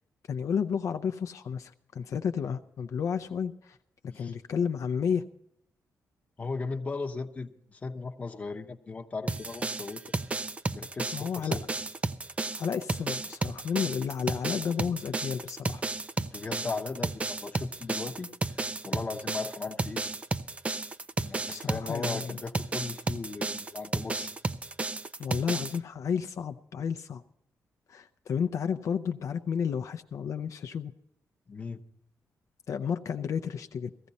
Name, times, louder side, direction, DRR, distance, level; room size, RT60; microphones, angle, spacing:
voice 1, 0.3-3.8 4.0-5.2 11.1-11.6 12.5-15.8 21.5-22.4 25.2-27.2 27.9-30.9 32.7-33.9, left 7 dB, 60° left, 7 dB, 0.6 m, -31 dB
voice 2, 6.4-10.0 10.7-11.7 16.2-18.3 18.6-20.0 21.2-24.3 31.5-31.8, left 4 dB, 25° left, 5 dB, 0.8 m, -37 dB
sound 1, 9.3-25.8, right 3 dB, 20° right, 0.5 m, -33 dB
16.5 x 14.5 x 4.1 m, 0.77 s
wide cardioid pair, 160°, 6 cm